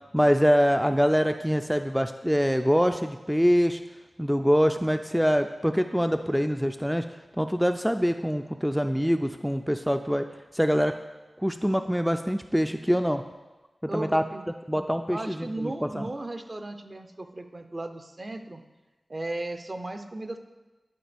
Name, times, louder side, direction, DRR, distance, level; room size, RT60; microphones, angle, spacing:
voice 1, 0.1-3.8 4.2-7.1 7.4-10.3 10.5-10.9 11.4-13.2 13.8-14.2 14.7-16.0, equal, ahead, 7 dB, 0.3 m, -24 dB
voice 2, 13.9-14.4 14.9-18.6 19.1-20.4, right 2 dB, 45° right, 7 dB, 0.6 m, -36 dB
11.5 x 4.3 x 3.4 m, 1.2 s
wide cardioid pair, 55°, 0 cm